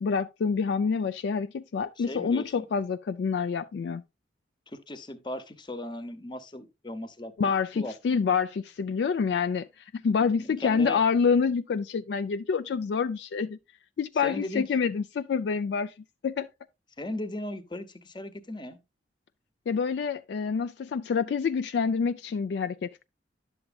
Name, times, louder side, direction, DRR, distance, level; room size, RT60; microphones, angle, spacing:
voice 1, 0.0-4.0 7.4-9.7 9.9-13.6 14.0-15.9 16.2-16.5 19.7-23.0, left 5 dB, 65° left, 0.3 m, -27 dB
voice 2, 2.0-2.7 4.7-8.2 10.4-11.0 14.2-14.6 17.0-18.8, left 1 dB, 25° left, 0.8 m, -37 dB
10.5 x 6.9 x 2.3 m
head